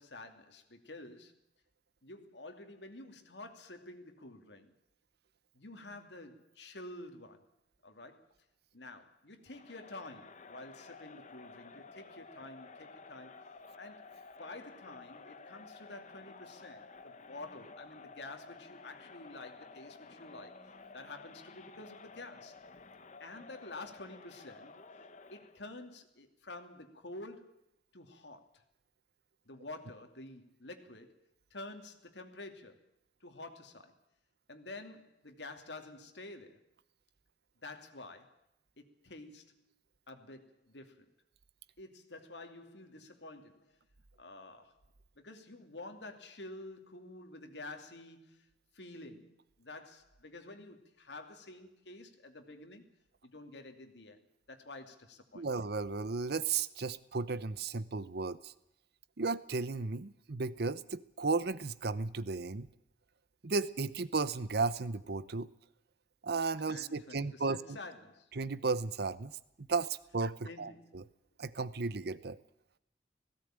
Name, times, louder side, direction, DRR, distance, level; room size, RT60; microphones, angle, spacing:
voice 1, 0.0-1.3 2.0-4.7 5.5-7.5 7.8-8.3 8.7-13.5 13.8-14.1 14.4-20.6 20.9-22.5 23.2-24.8 25.3-27.5 27.9-28.6 29.5-31.2 31.5-32.9 33.2-34.0 34.5-36.6 37.6-38.4 38.8-39.6 40.1-41.1 41.8-43.8 44.2-44.8 45.2-48.5 48.7-52.9 53.2-54.2 54.5-55.5 66.7-68.3 70.4-71.0, left 2 dB, 70° left, 2.7 m, -49 dB
Crowd, 9.5-25.6, left 4 dB, 45° left, 1.2 m, -53 dB
voice 2, 55.3-58.5 59.2-62.7 63.4-65.5 66.2-67.6 68.4-69.3 69.6-71.0 71.4-72.4, right 4 dB, 65° right, 0.8 m, -34 dB
17.5 x 16.5 x 9.0 m
head